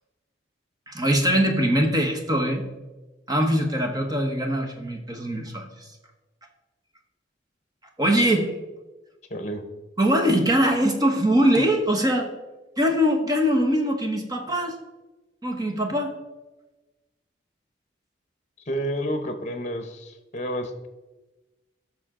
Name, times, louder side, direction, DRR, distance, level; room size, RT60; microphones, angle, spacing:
voice 1, 0.9-2.7 3.3-5.7 8.0-8.5 10.0-12.3 12.8-14.8 15.4-16.1, equal, 20° right, 4 dB, 1.1 m, -22 dB
voice 2, 9.3-9.6 18.7-20.9, equal, 35° left, 8 dB, 0.9 m, -30 dB
14.5 x 6.2 x 3.7 m, 1.1 s
head